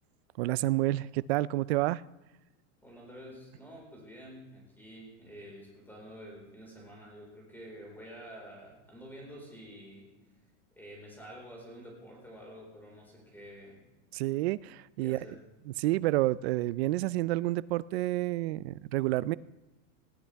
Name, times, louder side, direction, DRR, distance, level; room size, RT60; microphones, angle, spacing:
voice 1, 0.4-2.0 14.1-15.3 15.7-19.4, right 17 dB, 55° right, 19 dB, 0.4 m, -29 dB
voice 2, 2.8-10.1 10.8-13.9 15.0-15.4, equal, 5° left, -1 dB, 4.5 m, -49 dB
19.5 x 15.0 x 3.5 m, 1.0 s
supercardioid pair, 160°, 40 cm